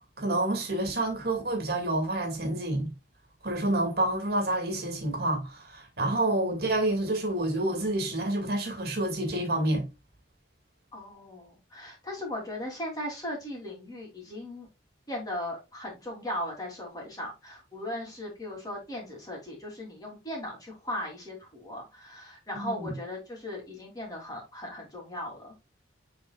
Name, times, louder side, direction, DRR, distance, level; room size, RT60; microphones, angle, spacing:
voice 1, 0.2-2.9 3.4-9.9 22.5-22.9, right 1 dB, 50° right, 2.2 m, -28 dB
voice 2, 10.9-14.7 15.1-25.5, left 1 dB, 20° left, 3.0 m, -38 dB
9.5 x 4.2 x 2.4 m
head